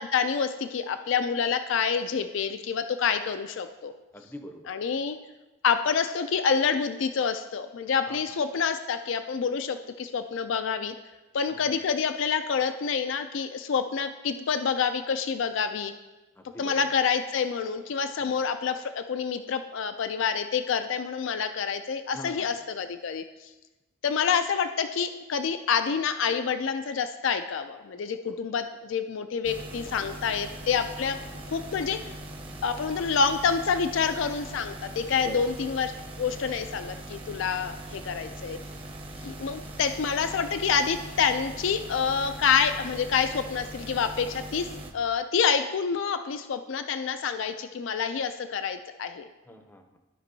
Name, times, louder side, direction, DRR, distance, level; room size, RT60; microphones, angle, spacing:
voice 1, 0.0-3.9 4.7-5.2 5.6-10.9 11.3-15.9 16.6-23.5 24.0-31.2 31.5-32.1 32.6-35.9 36.2-38.6 39.2-44.7 44.9-49.2, left 6 dB, 65° left, 9 dB, 0.4 m, -27 dB
voice 2, 4.1-4.7 8.1-8.2 11.5-11.8 16.4-16.8 18.2-18.3 22.1-22.5 28.3-28.6 29.7-30.2 31.0-31.1 35.1-35.4 49.5-50.0, equal, 10° left, 5 dB, 0.6 m, -44 dB
sound 1, 29.4-44.9, right 1 dB, 25° right, 0.8 m, -41 dB
14.5 x 5.2 x 2.7 m, 1.1 s
head